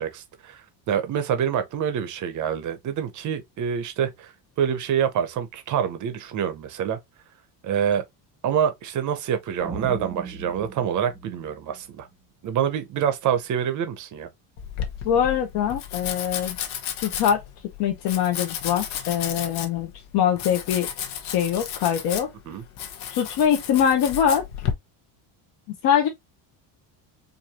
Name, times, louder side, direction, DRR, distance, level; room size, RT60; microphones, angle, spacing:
voice 1, 0.0-4.3 4.6-7.0 7.6-8.0 8.4-12.1 12.4-14.3 22.5-22.6, right 8 dB, 35° right, 0.6 m, -26 dB
sound 1, 9.6-12.1, right 3 dB, 5° right, 0.8 m, -38 dB
Domestic sounds home sounds, 14.6-24.7, left 9 dB, 70° left, 1.0 m, -33 dB
voice 2, 15.0-16.6 17.0-17.4 17.8-20.9 21.2-22.3 23.1-24.4 25.8-26.1, left 9 dB, 50° left, 0.8 m, -23 dB
4.6 x 2.6 x 2.8 m
cardioid pair, 180°, 50 cm